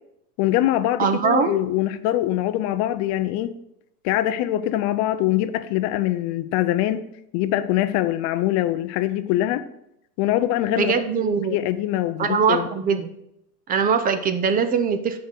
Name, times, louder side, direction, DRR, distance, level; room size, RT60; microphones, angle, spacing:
voice 1, 0.4-3.6 4.0-7.1 7.3-9.6 10.2-10.9 11.5-12.7, left 13 dB, 40° left, 12 dB, 0.5 m, -23 dB
voice 2, 1.0-1.5 10.8-11.6 12.2-13.1 13.7-15.2, right 6 dB, 20° right, 9 dB, 0.5 m, -21 dB
8.0 x 5.1 x 6.1 m, 0.80 s
supercardioid pair, 125°, 46 cm